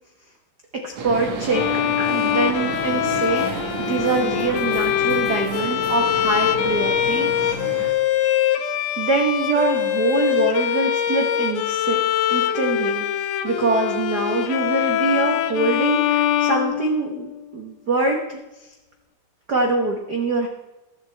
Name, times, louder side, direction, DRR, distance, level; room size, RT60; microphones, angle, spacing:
voice 1, 0.8-1.7 2.0-8.0 9.0-12.0 12.3-13.0 13.4-18.4 19.5-20.5, right 3 dB, 80° right, 2 dB, 0.9 m, -24 dB
sound 1, 1.0-7.9, right 4 dB, 60° right, 2.5 m, -31 dB
Bowed string instrument, 1.5-17.4, left 11 dB, 80° left, 2.2 m, -23 dB
21.0 x 7.6 x 3.4 m, 1.0 s
omnidirectional pair, 3.8 m